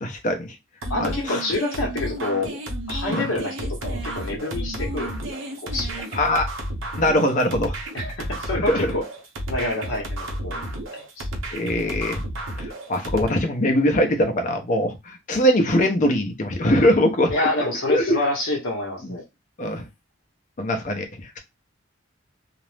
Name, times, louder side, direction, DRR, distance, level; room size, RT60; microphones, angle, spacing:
voice 1, 0.0-0.6 1.0-1.1 3.1-3.3 6.1-6.5 7.0-7.8 8.6-8.9 11.5-12.2 12.6-18.2 19.0-19.2 19.6-19.9 20.6-21.4, left 1 dB, 40° left, 0.6 m, -22 dB
sound 1, 0.8-13.3, right 1 dB, 75° right, 0.7 m, -31 dB
voice 2, 0.9-2.5 2.9-5.2 5.6-6.0 7.9-9.0 9.5-10.7 10.9-11.3 17.3-19.2, left 2 dB, 75° left, 0.8 m, -27 dB
2.5 x 2.0 x 3.1 m
head